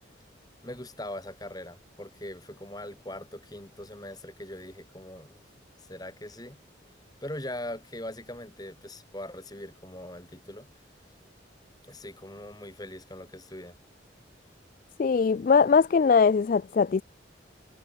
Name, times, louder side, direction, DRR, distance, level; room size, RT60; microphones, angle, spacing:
voice 1, 0.6-5.4 5.9-6.6 7.2-10.7 11.9-13.8, left 1 dB, 20° left, 4.7 m, -41 dB
voice 2, 15.0-17.0, left 5 dB, 45° left, 0.3 m, -21 dB
head